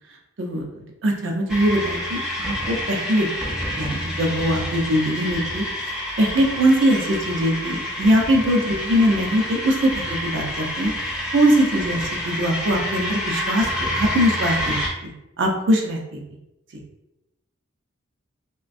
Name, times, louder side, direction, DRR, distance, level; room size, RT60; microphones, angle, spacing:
voice 1, 0.4-3.3 3.8-14.8 15.0-16.2 16.7-16.8, equal, 60° right, 1 dB, 0.5 m, -22 dB
sound 1, 1.5-14.9, left 1 dB, 5° right, 0.4 m, -28 dB
3.2 x 2.1 x 2.5 m, 0.94 s
head